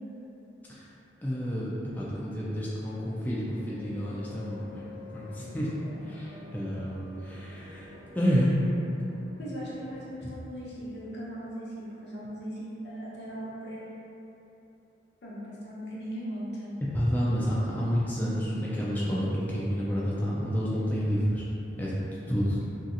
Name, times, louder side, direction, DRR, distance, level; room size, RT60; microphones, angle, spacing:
voice 1, 1.2-4.9 5.1-5.7 6.0-8.6 10.2-10.3 16.8-21.4 21.8-21.9 22.3-22.6, equal, 10° left, -8 dB, 0.3 m, -29 dB
sound 1, 2.6-10.0, left 2 dB, 30° right, 0.8 m, -49 dB
voice 2, 9.4-13.9 15.2-16.7, equal, 70° left, -7 dB, 0.7 m, -38 dB
3.1 x 2.7 x 2.5 m, 3.0 s
head